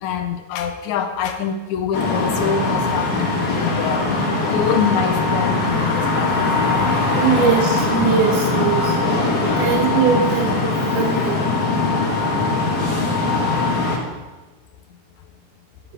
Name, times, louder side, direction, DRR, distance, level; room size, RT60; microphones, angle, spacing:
voice 1, 0.0-7.7 9.6-9.9 10.1-10.2, left 7 dB, 80° left, 7 dB, 1.9 m, -26 dB
sound 1, 1.9-14.0, left 3 dB, 55° left, 1.0 m, -20 dB
sound 2, 5.3-12.9, left 1 dB, 60° right, 2.3 m, -38 dB
voice 2, 7.1-8.9 9.6-11.5, right 7 dB, 80° right, 1 dB, 2.6 m, -21 dB
9.7 x 8.1 x 4.8 m, 1.2 s
omnidirectional pair, 3.8 m